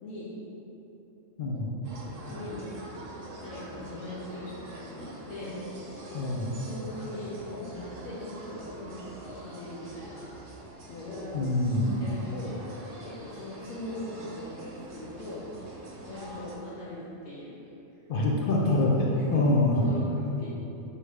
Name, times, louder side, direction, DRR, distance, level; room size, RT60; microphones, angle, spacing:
voice 1, 0.0-0.3 2.2-2.7 3.4-5.6 5.8-6.2 6.5-10.3 10.9-11.4 12.0-12.6 13.0-15.5 16.0-17.6 18.8-19.5 19.7-20.5, left 1 dB, 85° left, -7 dB, 1.0 m, -40 dB
voice 2, 1.4-1.8 6.1-6.5 11.3-12.0 18.1-19.9, left 2 dB, 60° left, -3 dB, 0.5 m, -25 dB
sound 1, 1.8-16.6, right 2 dB, 75° right, 1.0 m, -45 dB
4.7 x 2.7 x 3.4 m, 3.0 s
omnidirectional pair, 1.3 m